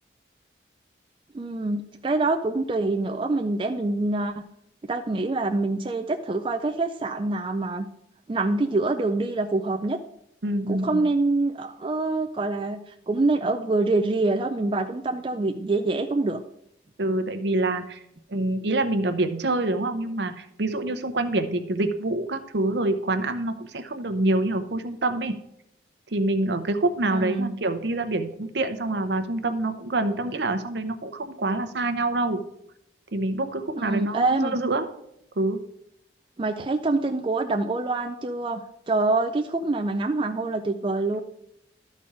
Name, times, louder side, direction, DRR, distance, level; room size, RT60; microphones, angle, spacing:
voice 1, 1.3-4.3 4.8-7.9 8.3-10.0 10.7-16.4 27.1-27.5 33.7-34.6 36.4-41.2, right 2 dB, 25° right, 4 dB, 0.4 m, -25 dB
voice 2, 10.4-11.1 17.0-18.0 18.3-25.3 26.1-32.4 33.1-34.8 35.4-35.6, right 2 dB, 65° right, 8 dB, 0.8 m, -26 dB
12.5 x 4.3 x 4.7 m, 0.78 s
head